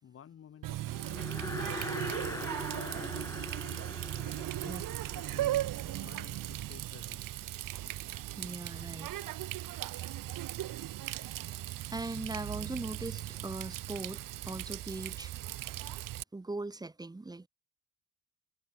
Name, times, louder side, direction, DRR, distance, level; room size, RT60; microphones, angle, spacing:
voice 1, 0.0-1.6 2.1-3.4 4.3-7.3, left 8 dB, 40° left, 2.9 m, -54 dB
Water tap faucet, 0.6-16.2, right 14 dB, 65° right, 2.1 m, -38 dB
sound 1, 0.9-6.3, left 3 dB, 10° left, 0.5 m, -42 dB
voice 2, 8.4-9.1 11.9-15.4 16.3-17.5, right 2 dB, 10° right, 3.6 m, -40 dB
cardioid pair, 170°, 36 cm